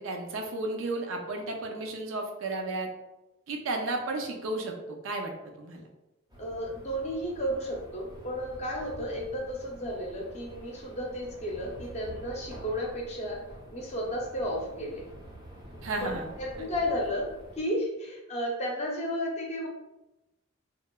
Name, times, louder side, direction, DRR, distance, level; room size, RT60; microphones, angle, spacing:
voice 1, 0.0-2.9 3.5-5.3 5.6-5.8 15.8-16.3 16.6-16.7, right 2 dB, 80° right, 3 dB, 0.5 m, -33 dB
sound 1, 6.3-17.6, equal, 20° right, 0.5 m, -47 dB
voice 2, 6.4-13.4 13.7-15.1 16.0-17.3 17.6-19.7, equal, 35° left, -3 dB, 0.5 m, -33 dB
2.9 x 2.1 x 2.2 m, 0.96 s
head